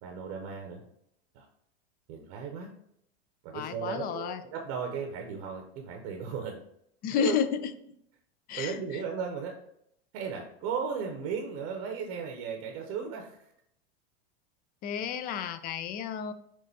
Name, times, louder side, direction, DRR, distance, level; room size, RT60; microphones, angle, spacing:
voice 1, 0.0-0.8 1.3-1.4 2.1-2.7 3.4-6.6 7.2-7.4 8.5-9.5 10.1-13.5, right 6 dB, 50° right, 3 dB, 0.8 m, -35 dB
voice 2, 3.5-4.4 7.0-7.6 8.5-9.0 14.8-16.3, left 8 dB, 30° left, 11 dB, 0.4 m, -31 dB
6.1 x 2.4 x 2.7 m, 0.72 s
hypercardioid pair, 100°, 31 cm